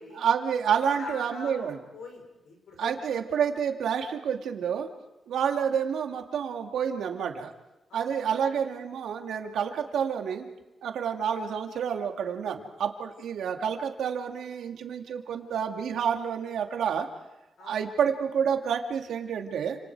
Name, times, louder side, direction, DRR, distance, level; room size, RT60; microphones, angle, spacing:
voice 1, 0.2-1.8 2.8-4.9 5.3-7.5 7.9-10.5 10.8-17.1 17.6-19.8, right 7 dB, 80° right, 3 dB, 2.4 m, -29 dB
voice 2, 0.7-3.2 7.9-8.1 17.6-17.8, left 3 dB, 65° left, 3 dB, 5.7 m, -45 dB
29.5 x 27.5 x 4.8 m, 1.0 s
wide cardioid pair, 160°, 0 cm